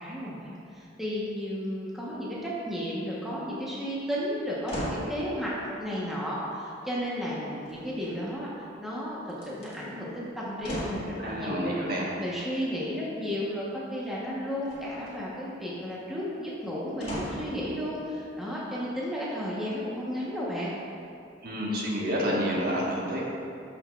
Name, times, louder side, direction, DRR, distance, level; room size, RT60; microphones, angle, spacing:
voice 1, 0.0-20.7, equal, ahead, -7 dB, 1.0 m, -33 dB
sound 1, 4.7-5.1 7.6-8.4 9.3-9.7 10.6-11.1 14.6-15.2 17.0-17.6 18.2-18.3, equal, 30° left, 1.8 m, -36 dB
voice 2, 11.2-12.1 21.4-23.2, equal, 50° right, -4 dB, 1.4 m, -29 dB
13.0 x 5.8 x 2.4 m, 2.6 s
head